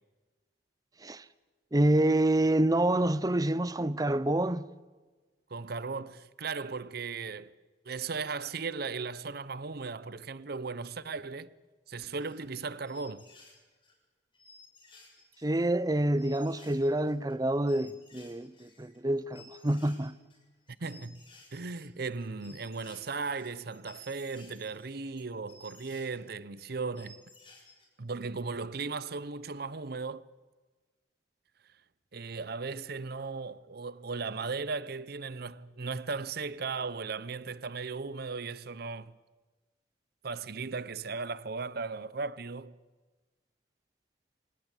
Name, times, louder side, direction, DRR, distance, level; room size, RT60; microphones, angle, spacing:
voice 1, 1.7-4.7 15.4-20.1, right 1 dB, 20° right, 0.7 m, -27 dB
voice 2, 5.5-7.5 7.9-11.5 11.9-13.2 20.8-21.2 21.5-27.2 28.0-30.3 32.1-39.2 40.2-42.8, right 4 dB, 55° right, 0.8 m, -37 dB
sound 1, 11.9-12.6 12.9-13.9 14.3-26.1 26.6-26.7 26.9-27.8, left 2 dB, 30° left, 6.8 m, -56 dB
25.5 x 18.0 x 8.2 m
head